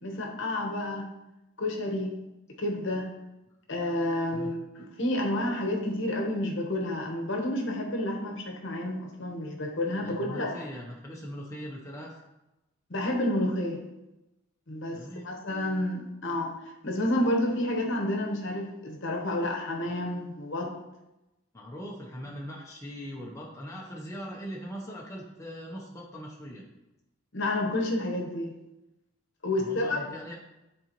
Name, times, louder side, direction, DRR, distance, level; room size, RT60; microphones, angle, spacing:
voice 1, 0.0-1.1 1.6-2.1 2.6-3.1 3.7-10.6 12.9-13.8 14.7-15.0 15.2-16.5 16.8-20.7 27.3-28.5 29.4-30.0, left 1 dB, 55° left, 1 dB, 1.0 m, -30 dB
voice 2, 10.0-12.2 14.8-15.3 21.5-26.6 29.6-30.4, equal, 15° left, -3 dB, 0.7 m, -40 dB
9.6 x 3.9 x 3.0 m, 0.96 s
head